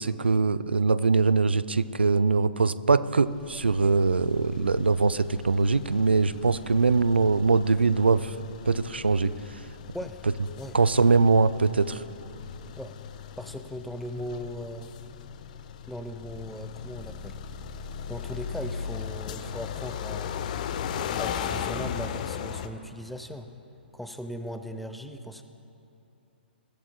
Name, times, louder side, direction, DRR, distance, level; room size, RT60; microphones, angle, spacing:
voice 1, 0.0-8.3 8.7-9.3 10.7-12.0, right 4 dB, 80° right, 16 dB, 0.4 m, -22 dB
sound 1, 3.3-22.7, left 8 dB, 45° left, 0.6 m, -38 dB
voice 2, 13.4-14.9 15.9-17.3 18.1-20.5 21.2-23.5 23.9-25.4, equal, ahead, 7 dB, 0.6 m, -38 dB
21.0 x 14.5 x 2.2 m, 2.8 s
figure-of-eight pair, 120°, 6 cm